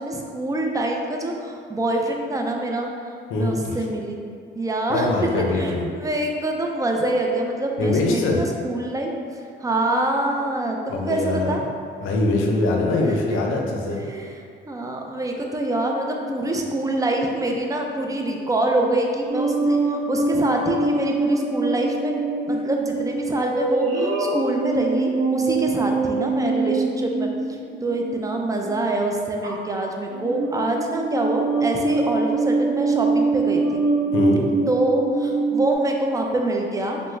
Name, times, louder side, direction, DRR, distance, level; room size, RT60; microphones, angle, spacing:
voice 1, 0.0-2.9 3.4-4.2 4.6-11.6 13.0-13.2 13.9-22.2 22.5-27.3 27.8-33.8 34.7-37.0, right 1 dB, 15° right, 1 dB, 0.3 m, -25 dB
voice 2, 3.3-3.8 4.9-5.9 7.8-8.5 10.9-11.7 12.0-14.0 34.1-34.4, left 2 dB, 85° left, 1 dB, 0.5 m, -23 dB
sound 1, 19.3-28.7 29.4-29.8 30.1-35.7, right 3 dB, 50° right, 0.9 m, -24 dB
3.4 x 2.0 x 3.1 m, 2.2 s
cardioid pair, 90°, 20 cm